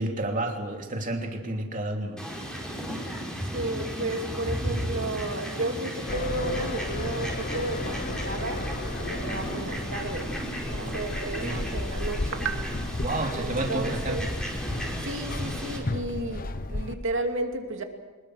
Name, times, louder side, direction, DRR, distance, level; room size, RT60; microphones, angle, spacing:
voice 1, 0.0-2.2 11.4-11.6 13.0-14.3, right 1 dB, 40° right, 2 dB, 3.0 m, -30 dB
Fowl, 2.2-15.8, equal, 5° left, 5.3 m, -34 dB
voice 2, 3.5-10.3 10.7-14.3 15.0-17.8, right 2 dB, 60° right, 4 dB, 2.6 m, -33 dB
sound 1, 6.1-16.9, left 2 dB, 40° left, 1.0 m, -34 dB
25.0 x 21.5 x 6.4 m, 1.3 s
head